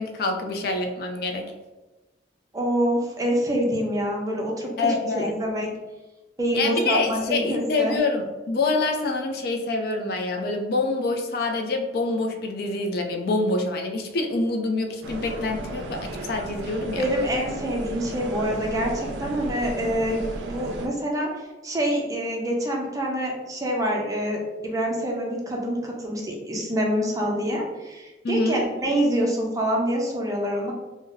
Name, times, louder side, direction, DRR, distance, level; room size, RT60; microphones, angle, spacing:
voice 1, 0.0-1.5 4.8-5.3 6.5-17.0 28.2-28.6, left 3 dB, 60° left, 3 dB, 0.4 m, -26 dB
voice 2, 2.5-5.7 6.4-8.0 17.0-21.3 21.6-30.7, equal, 20° right, -1 dB, 0.5 m, -26 dB
sound 1, 15.0-20.9, right 2 dB, 80° right, 0.4 m, -34 dB
2.7 x 2.1 x 3.7 m, 1.1 s
head